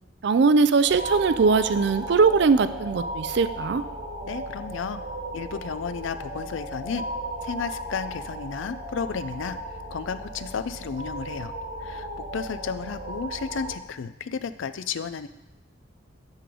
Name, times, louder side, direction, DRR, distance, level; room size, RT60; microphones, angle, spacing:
voice 1, 0.2-3.8, right 4 dB, 55° right, 13 dB, 0.4 m, -20 dB
sound 1, 0.9-13.8, right 1 dB, 40° right, 1.2 m, -35 dB
voice 2, 4.2-5.0 5.3-7.0 7.4-9.6 9.9-11.5 11.8-15.3, left 6 dB, 70° left, 13 dB, 0.4 m, -33 dB
11.5 x 3.8 x 4.9 m, 1.0 s
head